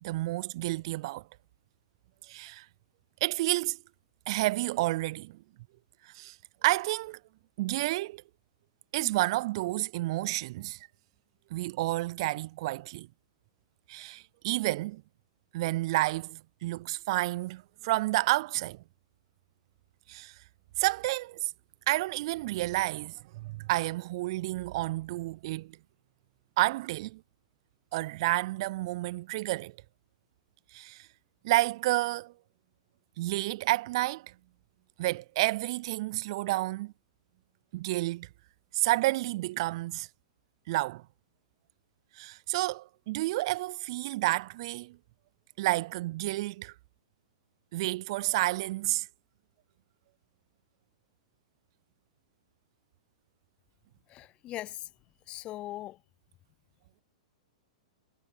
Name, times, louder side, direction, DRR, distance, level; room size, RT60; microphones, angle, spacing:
voice 1, 0.0-1.2 2.3-2.7 3.2-3.8 4.3-5.4 6.0-6.4 6.6-7.2 7.6-8.2 8.9-10.9 11.5-13.1 13.9-15.0 15.5-18.8 20.1-20.3 20.8-21.5 21.9-25.8 26.6-27.2 27.9-29.7 30.7-31.1 31.4-32.3 33.2-34.3 35.0-36.9 37.7-38.3 38.7-40.1 40.7-41.0 42.2-45.0 45.6-46.7 47.7-49.1, right 19 dB, 55° right, 0.4 m, -30 dB
voice 2, 54.1-54.9 55.3-56.0, left 15 dB, 30° left, 0.4 m, -40 dB
hypercardioid pair, 115°, 3 cm